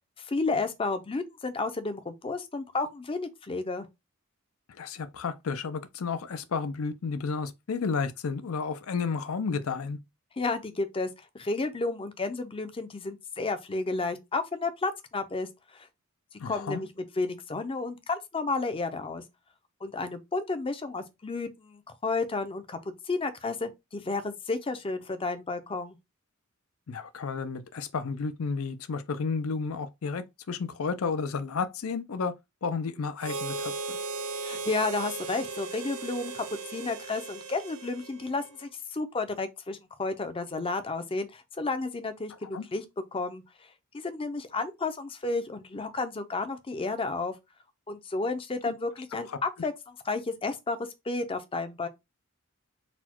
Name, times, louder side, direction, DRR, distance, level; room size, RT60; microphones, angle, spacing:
voice 1, 0.2-3.9 10.4-11.1 11.3-15.5 15.7-15.9 16.4-16.9 17.2-19.2 19.8-26.0 34.4-42.8 43.1-43.4 43.9-47.3 47.9-51.9, left 3 dB, 25° left, 0.5 m, -32 dB
voice 2, 4.7-10.0 16.4-16.8 26.9-32.3 32.6-34.0 42.4-42.6 48.7-48.8 49.3-49.4, left 5 dB, 75° left, 0.5 m, -32 dB
Harmonica, 33.2-38.7, right 4 dB, 75° right, 0.7 m, -37 dB
4.2 x 2.2 x 4.4 m
head